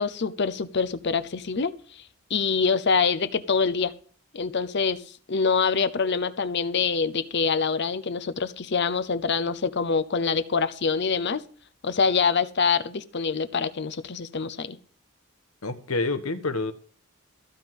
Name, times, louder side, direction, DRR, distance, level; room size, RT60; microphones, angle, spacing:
voice 1, 0.0-2.0 2.3-3.9 4.3-11.4 11.8-14.8, left 5 dB, 55° left, 0.7 m, -25 dB
voice 2, 15.6-16.7, left 3 dB, 85° left, 1.2 m, -27 dB
14.5 x 5.3 x 7.6 m
head